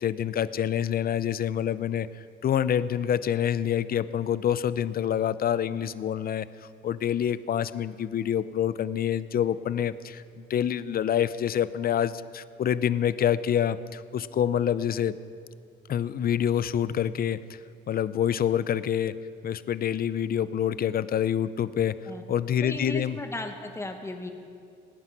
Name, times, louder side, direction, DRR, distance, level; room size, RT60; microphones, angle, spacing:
voice 1, 0.0-2.1 2.4-6.5 6.8-15.1 15.9-17.6 17.9-19.1 19.4-21.9 22.3-23.2, left 9 dB, 50° left, 16 dB, 0.5 m, -27 dB
voice 2, 22.6-24.3, left 2 dB, 15° left, 5 dB, 1.6 m, -36 dB
19.0 x 9.7 x 5.9 m, 2.3 s
cardioid pair, 90°, 20 cm